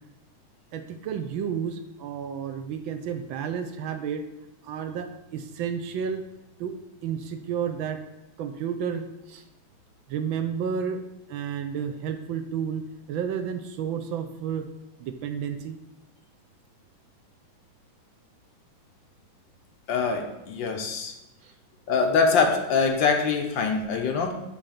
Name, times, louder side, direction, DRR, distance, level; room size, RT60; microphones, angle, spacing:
voice 1, 0.7-4.3 4.6-6.2 6.6-8.0 8.4-9.4 10.1-11.0 11.3-14.7 15.0-15.8 21.4-21.5, right 7 dB, 75° right, 7 dB, 1.4 m, -31 dB
voice 2, 19.9-21.1 21.9-24.3, left 4 dB, 70° left, 4 dB, 1.5 m, -24 dB
10.0 x 3.4 x 5.8 m, 0.92 s
omnidirectional pair, 2.3 m